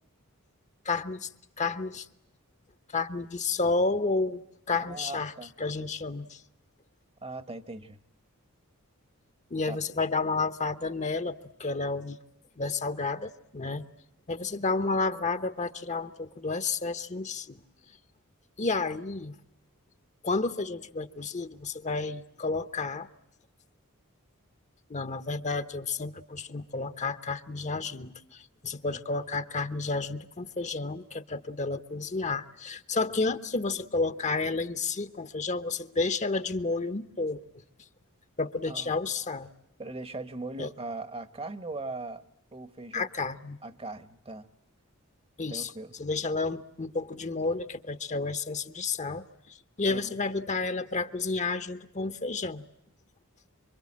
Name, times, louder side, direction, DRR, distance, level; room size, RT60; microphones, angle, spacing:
voice 1, 0.8-1.3 1.6-2.1 2.9-4.4 4.7-5.3 5.6-6.4 9.5-12.2 12.6-13.8 14.3-17.6 18.6-19.3 20.2-23.1 24.9-37.4 38.4-39.5 40.6-40.7 42.9-43.6 45.4-45.7 46.0-52.6, left 3 dB, 35° left, 12 dB, 1.0 m, -31 dB
voice 2, 4.8-5.5 7.2-8.0 9.7-9.8 14.4-14.5 28.8-29.0 38.7-38.9 39.8-42.2 42.5-43.1 43.6-44.5 45.5-45.9 49.9-50.2, right 2 dB, 25° right, 13 dB, 1.1 m, -39 dB
26.5 x 24.5 x 8.6 m, 0.78 s
head